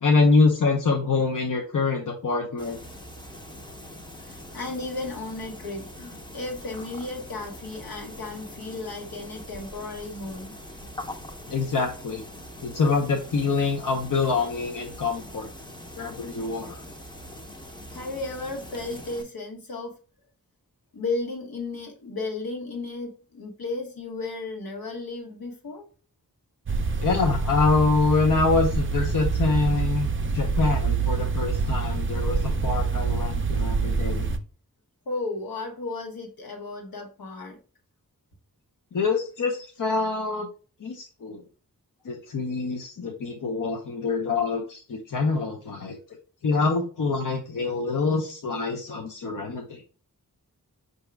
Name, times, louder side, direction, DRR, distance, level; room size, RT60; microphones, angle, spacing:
voice 1, 0.0-2.8 11.5-12.2 12.6-15.5 16.0-16.8 27.0-34.3 38.9-40.5 40.8-41.4 42.0-46.0 46.4-49.8, left 4 dB, 60° left, 1 dB, 0.6 m, -25 dB
sound 1, 2.6-19.2, left 1 dB, 15° left, 0.6 m, -42 dB
voice 2, 4.2-10.5 17.9-19.9 20.9-25.9 35.1-37.6, left 3 dB, 80° left, 1 dB, 1.1 m, -34 dB
sound 2, 26.7-34.4, right 4 dB, 35° right, 0.4 m, -26 dB
4.8 x 2.7 x 3.3 m, 0.39 s
wide cardioid pair, 85°, 35 cm